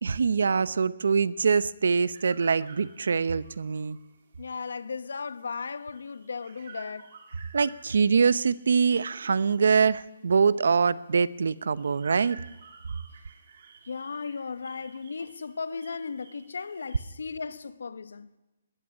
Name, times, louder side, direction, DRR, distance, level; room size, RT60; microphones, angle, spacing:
voice 1, 0.0-4.0 7.5-12.4, right 5 dB, 65° right, 0.8 m, -24 dB
sound 1, 2.1-17.1, right 6 dB, 40° right, 2.6 m, -53 dB
voice 2, 4.4-7.1 13.9-18.3, left 5 dB, 80° left, 1.3 m, -36 dB
20.5 x 17.0 x 10.0 m
hypercardioid pair, 180°, 0 cm